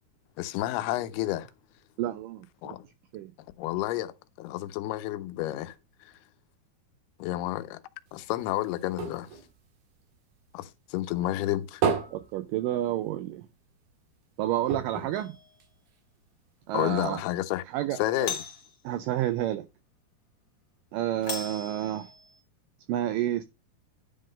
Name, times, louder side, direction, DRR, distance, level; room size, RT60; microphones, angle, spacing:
voice 1, 0.4-1.5 2.6-2.8 3.6-5.8 7.2-7.8 8.1-9.3 10.5-11.8 16.7-17.6 17.9-18.4, left 15 dB, 90° left, 2.6 m, -30 dB
voice 2, 2.0-2.8 3.1-3.3 12.1-13.5 14.4-15.4 16.7-17.2 17.7-18.3 18.8-19.7 20.9-22.1 22.9-23.4, right 13 dB, 85° right, 1.9 m, -30 dB
sound 1, 8.1-10.7 11.1-13.3 13.7-13.8 14.1-14.2 14.7-16.2 16.8-16.9, right 6 dB, 70° right, 3.2 m, -34 dB
Doorbell, 15.1-15.6 18.1-18.7 21.2-22.4, left 4 dB, 50° left, 1.2 m, -38 dB
10.5 x 3.8 x 5.0 m
omnidirectional pair, 4.5 m